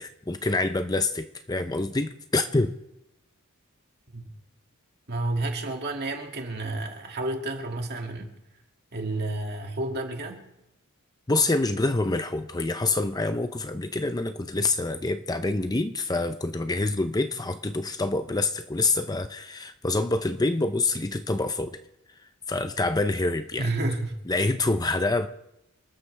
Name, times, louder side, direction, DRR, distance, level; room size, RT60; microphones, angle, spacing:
voice 1, 0.0-2.8 11.3-21.8 22.5-23.7 24.3-25.3, left 2 dB, 20° left, 0.6 m, -26 dB
voice 2, 5.1-8.4 8.9-10.5 23.6-24.2, right 2 dB, 50° right, 2.3 m, -30 dB
28.0 x 13.0 x 3.4 m
head